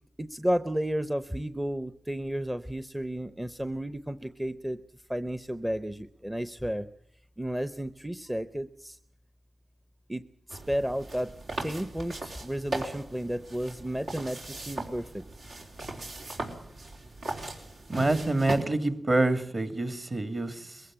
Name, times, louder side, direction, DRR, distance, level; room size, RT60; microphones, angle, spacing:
voice 1, 0.2-4.8 5.1-6.9 7.4-9.0 10.1-11.3 11.6-15.2, equal, 10° right, 0.7 m, -32 dB
sound 1, 10.5-18.6, right 2 dB, 80° right, 4.1 m, -38 dB
voice 2, 17.9-20.8, right 2 dB, 35° right, 2.1 m, -27 dB
21.5 x 16.0 x 8.8 m
cardioid pair, 65°, 0 cm